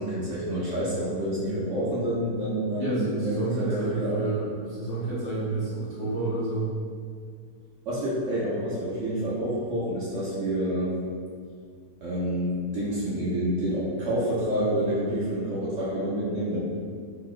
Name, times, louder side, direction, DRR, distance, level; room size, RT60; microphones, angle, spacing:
voice 1, 0.0-4.2 7.9-10.9 12.0-16.6, right 1 dB, 65° right, -8 dB, 0.8 m, -28 dB
voice 2, 2.7-6.6, right 2 dB, 25° left, -11 dB, 0.5 m, -29 dB
3.0 x 2.8 x 2.4 m, 2.1 s
omnidirectional pair, 1.7 m